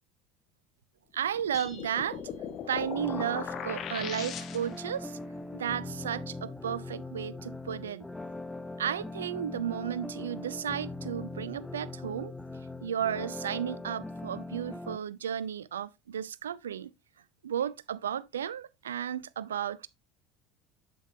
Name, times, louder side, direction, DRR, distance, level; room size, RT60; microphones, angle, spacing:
voice 1, 1.1-2.2 2.7-5.2 5.5-8.1 8.8-12.3 12.8-16.9 17.4-19.9, right 9 dB, 80° right, 0.4 m, -33 dB
sound 1, 1.3-5.0, left 8 dB, 50° left, 1.5 m, -39 dB
sound 2, 1.5-3.1, left 3 dB, 30° left, 3.1 m, -52 dB
sound 3, 3.0-15.0, left 2 dB, 10° left, 0.8 m, -41 dB
8.1 x 7.7 x 2.7 m
hypercardioid pair, 70°, 0 cm